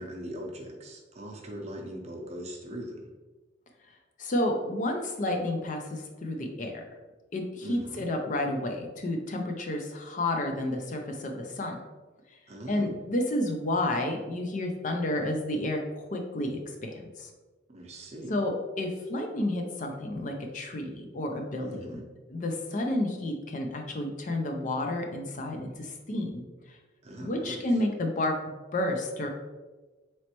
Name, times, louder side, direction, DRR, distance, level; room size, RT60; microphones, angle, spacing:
voice 1, 0.0-3.0 7.6-8.0 12.5-12.9 17.7-18.3 21.6-22.0 27.0-27.6, right 1 dB, 35° right, 0 dB, 0.6 m, -40 dB
voice 2, 4.2-6.8 7.3-11.8 12.3-12.4 12.7-17.3 18.3-22.0 22.3-26.4 26.7-26.8 27.2-28.3 28.7-29.3, left 1 dB, 45° left, 3 dB, 0.5 m, -31 dB
4.1 x 3.1 x 2.9 m, 1.2 s
head